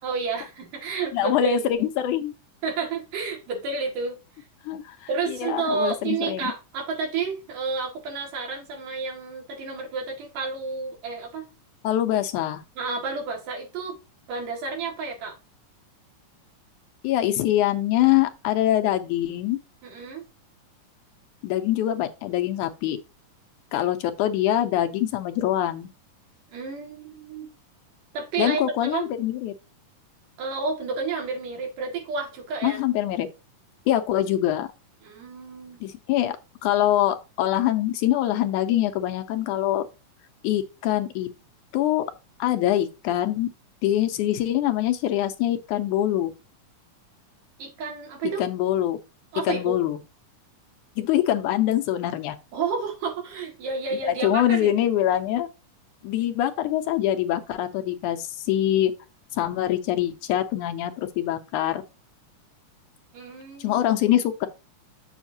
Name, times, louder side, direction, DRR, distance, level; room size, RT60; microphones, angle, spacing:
voice 1, 0.0-1.7 2.6-4.2 5.1-11.5 12.8-14.0 14.3-15.4 19.8-20.3 26.5-27.5 28.1-29.1 30.4-32.8 35.0-35.8 47.6-48.4 49.3-49.8 52.5-54.7 63.1-63.9, right 4 dB, 80° right, 3.6 m, -30 dB
voice 2, 1.1-2.3 4.7-6.5 11.8-12.6 17.0-19.6 21.4-23.0 23.7-25.9 28.4-29.5 32.6-33.3 33.9-34.7 35.8-36.4 36.6-39.9 40.4-41.3 41.7-42.1 42.4-43.5 43.8-46.3 48.4-49.0 49.4-50.0 51.0-52.4 54.0-55.5 56.0-58.9 59.3-61.8 63.6-64.5, left 12 dB, 80° left, 2.0 m, -24 dB
7.2 x 7.1 x 2.7 m
omnidirectional pair, 3.7 m